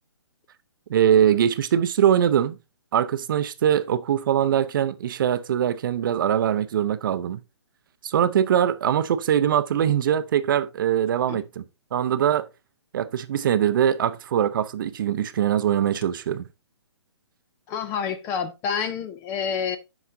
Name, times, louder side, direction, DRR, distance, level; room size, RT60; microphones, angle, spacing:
voice 1, 0.9-2.6 2.9-7.4 8.0-11.6 11.9-12.5 12.9-16.5, right 9 dB, 45° right, 0.6 m, -22 dB
voice 2, 17.7-19.8, left 7 dB, 15° left, 0.4 m, -28 dB
13.0 x 4.9 x 2.6 m
hypercardioid pair, 155°, 15 cm